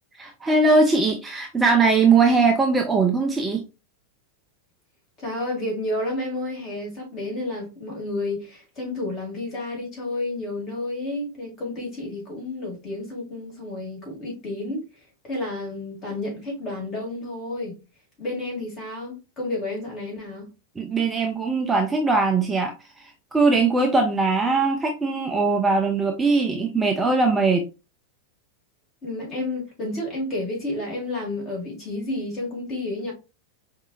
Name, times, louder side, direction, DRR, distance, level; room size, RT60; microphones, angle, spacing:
voice 1, 0.2-3.6 20.8-22.7 23.3-27.7, right 3 dB, 15° right, 0.6 m, -20 dB
voice 2, 5.2-14.8 15.2-17.8 18.2-20.5 29.0-33.1, left 2 dB, 30° left, 2.3 m, -31 dB
4.8 x 2.7 x 2.4 m
figure-of-eight pair, 90°, 0 cm